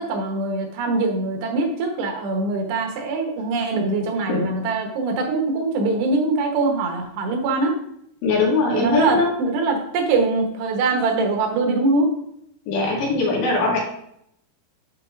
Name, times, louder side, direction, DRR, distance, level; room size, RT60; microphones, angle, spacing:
voice 1, 0.0-7.8 8.7-12.1, right 3 dB, 80° right, 2 dB, 3.3 m, -23 dB
voice 2, 8.2-9.3 12.7-13.8, left 3 dB, 85° left, -3 dB, 4.1 m, -21 dB
11.0 x 4.7 x 2.5 m, 0.73 s
omnidirectional pair, 4.9 m